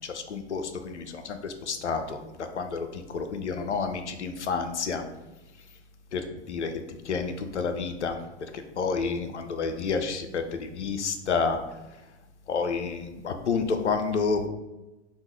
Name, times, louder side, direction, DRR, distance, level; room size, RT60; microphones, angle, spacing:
voice 1, 0.0-2.2 2.5-5.0 6.1-6.2 6.5-6.7 7.1-8.2 8.8-11.6 12.5-14.5, left 5 dB, 80° left, 7 dB, 0.5 m, -29 dB
3.6 x 2.4 x 4.3 m, 1.0 s
figure-of-eight pair, 95°, 34 cm